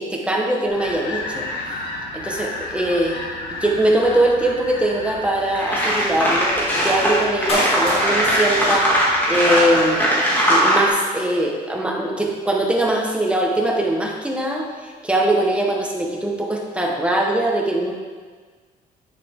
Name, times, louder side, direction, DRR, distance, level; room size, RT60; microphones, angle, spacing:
voice 1, 0.0-1.5 2.1-3.2 3.6-9.0 9.3-10.0 10.5-18.0, right 1 dB, 5° right, 0 dB, 1.4 m, -21 dB
sound 1, 0.7-9.9, left 2 dB, 80° left, 2.1 m, -33 dB
sound 2, 5.1-5.2 5.5-10.9, equal, 10° left, 2.6 m, -19 dB
Clapping, 7.5-9.5 9.7-9.8, left 1 dB, 35° left, 2.4 m, -28 dB
8.7 x 7.7 x 3.8 m, 1.5 s
cardioid pair, 110°, 17 cm